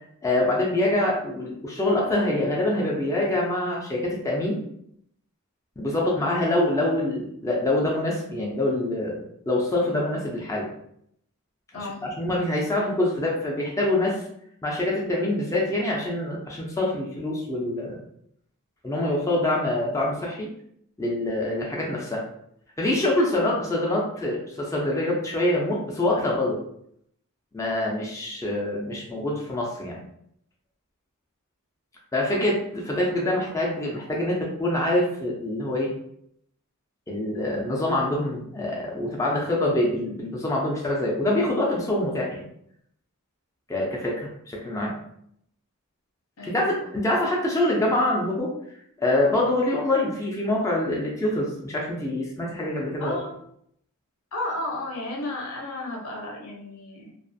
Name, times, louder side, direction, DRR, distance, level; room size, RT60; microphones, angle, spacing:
voice 1, 0.2-4.6 5.8-10.7 11.7-14.2 14.6-18.0 18.8-20.5 21.0-22.2 22.8-26.6 27.5-30.0 32.1-35.9 37.1-42.4 43.7-45.0 46.4-48.5 49.0-53.2, left 1 dB, 15° left, -3 dB, 0.4 m, -25 dB
voice 2, 11.7-12.1 46.4-46.9 53.0-53.3 54.3-57.1, left 2 dB, 70° left, -1 dB, 0.7 m, -33 dB
2.4 x 2.3 x 2.5 m, 0.71 s
head